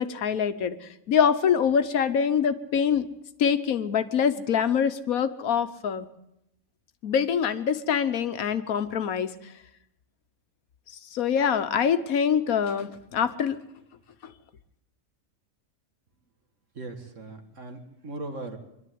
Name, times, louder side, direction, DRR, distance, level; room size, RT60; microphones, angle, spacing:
voice 1, 0.0-3.1 3.4-6.1 7.0-9.3 11.1-13.6, left 7 dB, 75° left, 11 dB, 1.4 m, -24 dB
voice 2, 16.8-18.6, right 2 dB, 60° right, 5 dB, 2.3 m, -38 dB
23.0 x 12.0 x 9.4 m, 0.84 s
omnidirectional pair, 1.5 m